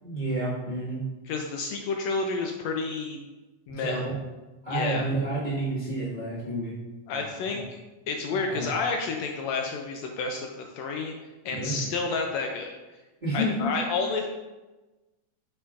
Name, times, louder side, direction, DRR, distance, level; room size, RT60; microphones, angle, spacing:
voice 1, 0.0-1.0 3.8-4.1 4.6-6.7 7.5-7.6 8.5-8.7 11.5-11.8 13.2-13.7, right 1 dB, 25° right, -10 dB, 1.1 m, -29 dB
voice 2, 1.3-3.2 3.7-4.0 4.7-5.1 7.1-7.6 8.1-11.1 11.4-12.7 13.3-14.3, left 4 dB, 85° left, 3 dB, 1.5 m, -30 dB
6.8 x 5.7 x 2.4 m, 1.1 s
omnidirectional pair, 3.5 m